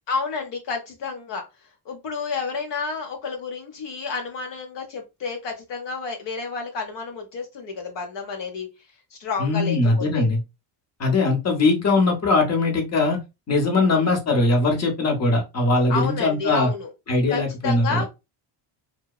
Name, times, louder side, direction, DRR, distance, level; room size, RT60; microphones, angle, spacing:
voice 1, 0.1-1.4 1.9-8.7 9.1-10.3 13.8-14.1 15.9-16.9 17.3-18.1, left 5 dB, 60° left, 2 dB, 0.8 m, -30 dB
voice 2, 9.4-10.4 11.0-13.2 13.5-16.7 17.1-18.1, left 2 dB, 30° left, 2 dB, 0.9 m, -21 dB
2.9 x 2.1 x 2.3 m, 0.24 s
cardioid pair, 115°, 49 cm